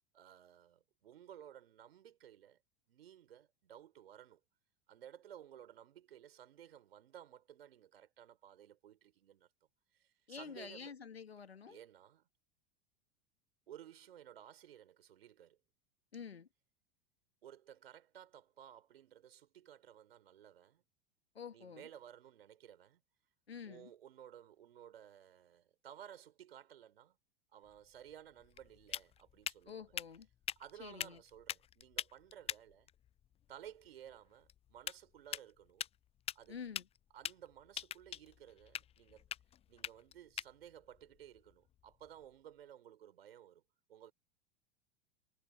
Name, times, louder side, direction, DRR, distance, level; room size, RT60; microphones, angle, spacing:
voice 1, 0.1-2.6 2.9-4.4 4.9-9.5 9.9-11.0 11.7-12.3 13.7-15.6 17.4-20.8 21.5-23.0 23.6-27.2 27.5-29.9 30.6-32.9 33.5-35.9 36.3-36.6 37.1-39.2 39.7-43.6 43.9-44.1, right 10 dB, 70° right, 4.2 m, -56 dB
voice 2, 10.3-11.8 16.1-16.5 21.3-21.9 23.5-23.9 29.7-30.3 30.8-31.2 36.5-36.9, left 6 dB, 85° left, 1.8 m, -48 dB
sound 1, 27.6-42.4, left 10 dB, 20° left, 0.5 m, -47 dB
figure-of-eight pair, 85°, 30 cm